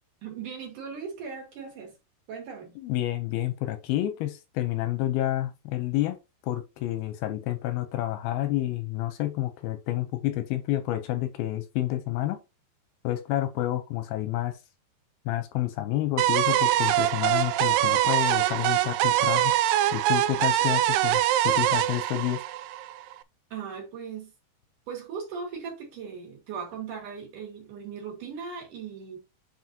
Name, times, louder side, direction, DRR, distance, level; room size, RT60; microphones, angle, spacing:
voice 1, 0.2-1.9 2.3-2.7 23.5-24.3 24.9-29.2, right 6 dB, 50° right, 3.7 m, -38 dB
voice 2, 2.8-6.2 6.4-12.4 13.0-14.6 15.3-19.5 19.9-22.4, left 14 dB, 80° left, 2.3 m, -29 dB
sound 1, 16.2-23.1, right 13 dB, 80° right, 2.5 m, -24 dB
9.4 x 4.8 x 2.8 m
omnidirectional pair, 4.9 m